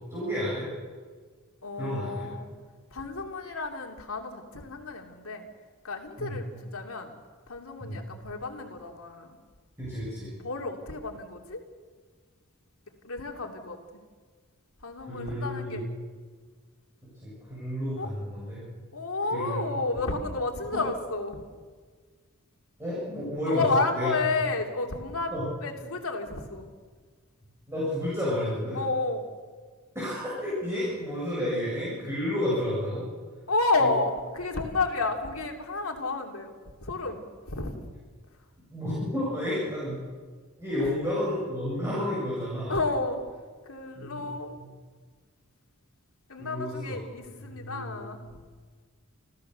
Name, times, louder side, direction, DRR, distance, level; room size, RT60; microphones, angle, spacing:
voice 1, 0.1-0.7 1.7-2.3 6.2-6.4 7.8-8.0 9.8-10.3 15.1-15.8 17.2-18.6 19.3-19.6 20.7-20.8 22.8-23.6 23.9-24.1 25.3-25.4 27.7-28.8 29.9-33.0 38.7-40.0 40.6-42.8 43.9-44.3 44.6-44.7 46.4-46.8 47.4-48.0, left 1 dB, 10° right, -8 dB, 8.0 m, -31 dB
voice 2, 1.6-2.5 2.9-5.5 5.8-7.1 7.5-9.3 10.4-11.6 13.0-13.8 14.8-15.8 18.0-18.1 18.9-21.4 23.4-25.3 25.6-26.7 28.7-29.3 33.5-36.5 36.8-37.8 42.7-43.2 43.7-44.6 46.3-48.2, left 3 dB, 70° left, 2 dB, 2.8 m, -31 dB
29.5 x 14.5 x 6.8 m, 1.5 s
head